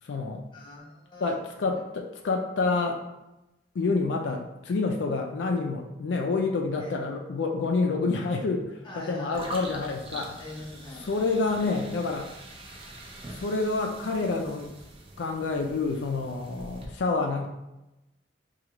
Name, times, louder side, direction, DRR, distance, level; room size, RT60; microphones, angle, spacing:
voice 1, 0.0-0.4 1.2-3.0 3.7-10.4 11.0-12.3 13.3-14.7 15.2-17.5, left 3 dB, 80° left, 1 dB, 0.4 m, -28 dB
voice 2, 0.5-1.8 6.8-6.9 8.8-9.5 10.4-11.1, left 2 dB, 30° left, -3 dB, 0.8 m, -44 dB
sound 1, 9.3-16.9, right 1 dB, 30° right, 0.6 m, -44 dB
4.5 x 2.4 x 2.9 m, 0.96 s
head